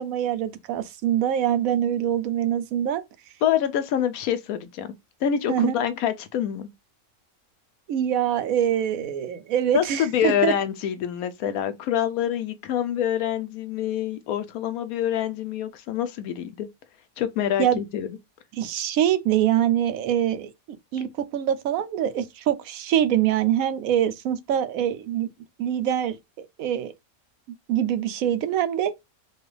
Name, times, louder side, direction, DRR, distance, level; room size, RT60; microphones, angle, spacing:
voice 1, 0.0-3.0 5.5-5.7 7.9-10.5 17.6-17.8 18.6-25.3 25.6-26.9 27.7-28.9, right 10 dB, 75° right, 1.0 m, -24 dB
voice 2, 3.4-4.9 5.2-6.7 9.7-16.7 17.2-18.1, left 10 dB, 90° left, 1.1 m, -26 dB
4.3 x 2.3 x 3.2 m
omnidirectional pair, 1.5 m